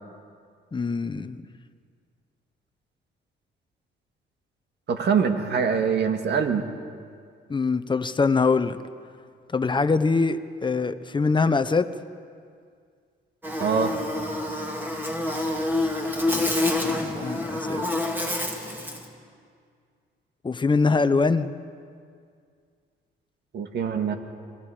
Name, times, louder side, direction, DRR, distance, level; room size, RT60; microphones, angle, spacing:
voice 1, 0.7-1.4 7.5-8.8 9.5-11.9 16.3-17.8 20.4-21.5, left 4 dB, 25° left, 11 dB, 0.9 m, -24 dB
voice 2, 4.9-6.7 13.6-14.0 23.5-24.1, right 6 dB, 60° right, 6 dB, 2.0 m, -24 dB
Buzz, 13.4-19.0, left 2 dB, 10° right, 3.1 m, -27 dB
27.0 x 20.0 x 5.1 m, 2.2 s
cardioid pair, 90°, 20 cm